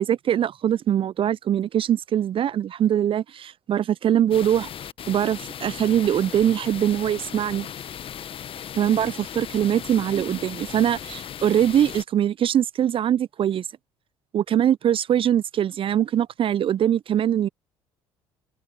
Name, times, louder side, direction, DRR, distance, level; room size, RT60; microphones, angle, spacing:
voice 1, 0.0-4.7 5.1-7.7 8.8-13.7 14.3-17.5, right 10 dB, 40° right, 0.8 m, -22 dB
sound 1, 4.3-12.0, left 9 dB, 40° left, 1.4 m, -37 dB
figure-of-eight pair, 55°, 14 cm